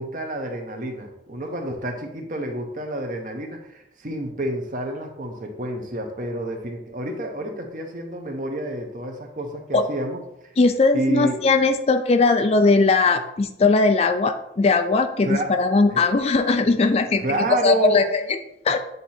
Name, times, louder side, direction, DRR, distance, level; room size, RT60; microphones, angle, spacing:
voice 1, 0.0-10.5 10.9-11.4 15.2-15.5 15.9-16.0 17.2-18.1, right 1 dB, 45° right, 3 dB, 0.9 m, -29 dB
voice 2, 10.6-17.2 17.6-18.4 18.6-18.8, left 3 dB, 35° left, 8 dB, 0.3 m, -19 dB
8.0 x 2.8 x 4.3 m, 0.81 s
head